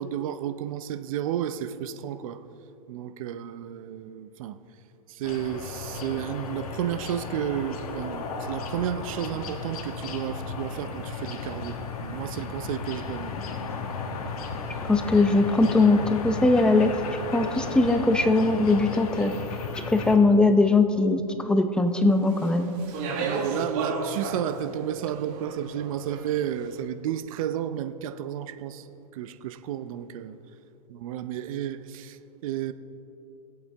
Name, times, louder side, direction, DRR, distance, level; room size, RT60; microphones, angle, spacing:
voice 1, 0.0-2.4 2.9-4.6 5.1-13.4 23.2-28.9 29.1-30.4 30.9-32.7, right 10 dB, 65° right, 0.7 m, -32 dB
sound 1, 5.2-20.2, left 4 dB, 70° left, 1.6 m, -34 dB
voice 2, 14.9-16.9 17.3-19.3 19.9-22.7, left 2 dB, 5° left, 0.7 m, -20 dB
Speech, 22.2-26.6, right 3 dB, 45° right, 1.8 m, -34 dB
20.0 x 8.3 x 3.5 m
hypercardioid pair, 130°, 19 cm